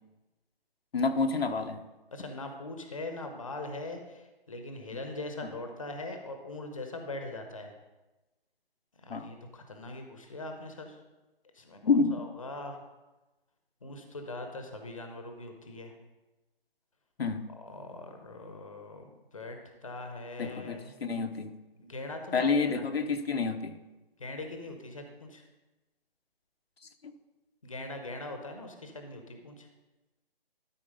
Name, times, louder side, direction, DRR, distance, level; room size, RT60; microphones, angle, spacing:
voice 1, 0.9-1.8 9.1-9.3 11.8-12.2 17.2-17.5 20.4-21.6 22.3-23.8 27.0-27.1, left 4 dB, 80° left, 6 dB, 0.9 m, -28 dB
voice 2, 2.1-7.7 9.0-11.0 11.5-12.8 13.8-15.9 17.6-19.6 19.8-20.9 21.8-22.8 24.2-25.4 27.6-29.7, left 2 dB, 35° left, 5 dB, 0.9 m, -41 dB
12.5 x 4.3 x 5.4 m, 1.1 s
hypercardioid pair, 175°, 30 cm